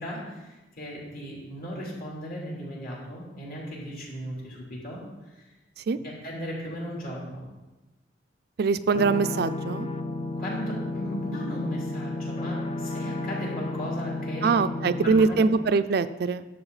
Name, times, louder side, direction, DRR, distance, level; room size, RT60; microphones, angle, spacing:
voice 1, 0.0-5.0 5.3-5.4 6.0-7.4 10.4-14.5 15.0-15.4, equal, 55° left, -4 dB, 3.2 m, -36 dB
voice 2, 8.6-9.9 14.4-16.4, right 4 dB, 60° right, 12 dB, 0.4 m, -23 dB
sound 1, 8.9-15.1, left 2 dB, 30° left, 0.5 m, -32 dB
11.0 x 7.5 x 4.0 m, 1.1 s
head